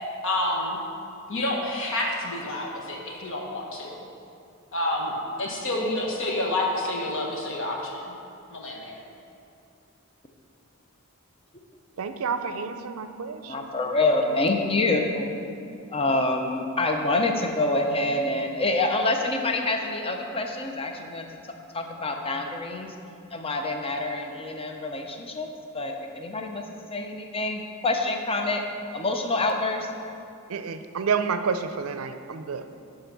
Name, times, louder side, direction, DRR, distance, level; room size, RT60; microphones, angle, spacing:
voice 1, 0.2-0.8 1.3-4.0 4.7-8.1 8.5-9.0, left 1 dB, 65° left, -1 dB, 1.3 m, -29 dB
voice 2, 12.0-13.8 14.3-14.4 30.5-32.8, right 5 dB, 70° right, 9 dB, 0.5 m, -30 dB
voice 3, 13.5-15.4 15.9-21.3 21.7-22.9 23.3-25.5 25.7-26.6 26.9-28.6 28.9-29.9, left 2 dB, 25° left, 3 dB, 0.7 m, -26 dB
11.5 x 3.8 x 5.9 m, 2.6 s
head